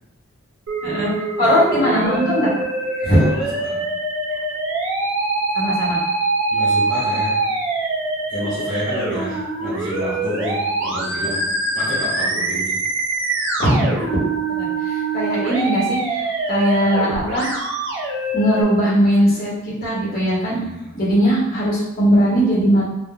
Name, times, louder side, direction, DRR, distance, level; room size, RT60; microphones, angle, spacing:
Musical instrument, 0.7-18.6, right 2 dB, 65° right, 0.6 m, -24 dB
voice 1, 0.8-1.1 1.4-3.3 5.5-6.0 13.6-13.7 14.6-17.5 18.3-19.5 19.8-20.6 20.9-22.8, equal, 45° left, -6 dB, 1.0 m, -19 dB
voice 2, 3.0-4.0 4.3-4.4 6.5-7.5 8.3-12.8 20.4-20.9, equal, 25° right, -13 dB, 1.2 m, -29 dB
3.5 x 2.1 x 2.2 m, 0.89 s
head